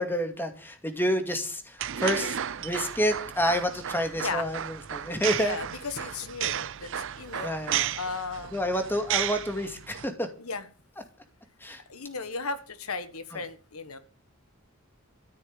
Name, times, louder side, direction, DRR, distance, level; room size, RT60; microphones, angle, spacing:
voice 1, 0.0-5.6 7.4-7.9 8.5-10.3 11.6-11.8, equal, 10° left, 6 dB, 2.2 m, -29 dB
sound 1, 1.8-10.1, right 10 dB, 60° right, 0.6 m, -33 dB
voice 2, 4.1-4.5 5.2-7.5 8.0-8.5 10.4-10.6 11.9-14.0, left 4 dB, 85° left, 12 dB, 1.5 m, -35 dB
14.0 x 6.3 x 9.7 m, 0.37 s
head